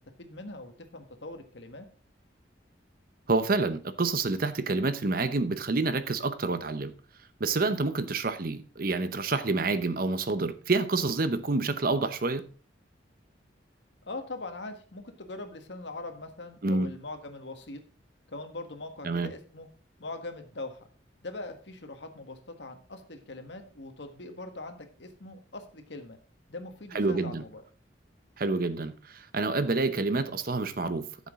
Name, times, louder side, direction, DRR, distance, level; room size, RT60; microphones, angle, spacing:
voice 1, 0.2-1.9 14.0-17.8 18.3-19.7 20.0-20.8 21.2-26.2 26.5-27.6, left 2 dB, 75° left, 1.5 m, -41 dB
voice 2, 3.3-6.9 7.4-12.4 16.6-16.9 19.0-19.3 26.9-27.4 28.4-31.3, right 3 dB, 55° right, 0.8 m, -28 dB
13.0 x 7.3 x 3.7 m
head